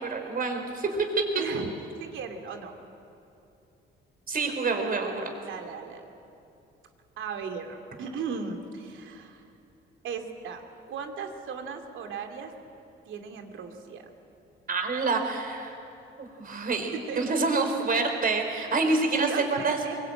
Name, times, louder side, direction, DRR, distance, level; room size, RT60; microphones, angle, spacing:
voice 1, 0.0-1.1 4.3-5.4 14.7-15.7 16.2-19.8, right 3 dB, 45° right, 5 dB, 4.1 m, -27 dB
voice 2, 1.4-1.7 2.0-2.7 5.4-6.1 7.2-9.4 10.0-12.5 13.1-14.0 16.6-16.8 17.1-17.2 18.9-20.0, right 6 dB, 80° right, 5 dB, 2.6 m, -37 dB
23.5 x 21.5 x 8.9 m, 2.7 s
cardioid pair, 90°, 20 cm